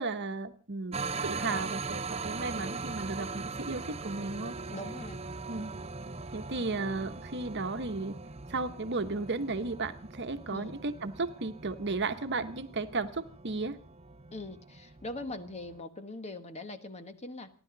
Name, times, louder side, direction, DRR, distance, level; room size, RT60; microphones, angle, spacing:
voice 1, 0.0-4.6 5.5-5.7 6.3-8.2 8.5-13.8, right 3 dB, 55° right, 8 dB, 1.2 m, -34 dB
sound 1, 0.9-15.8, right 4 dB, 30° right, 0.8 m, -40 dB
voice 2, 4.7-5.2 10.5-10.7 14.3-17.5, left 2 dB, 30° left, 9 dB, 1.4 m, -41 dB
29.0 x 11.5 x 4.0 m, 0.39 s
head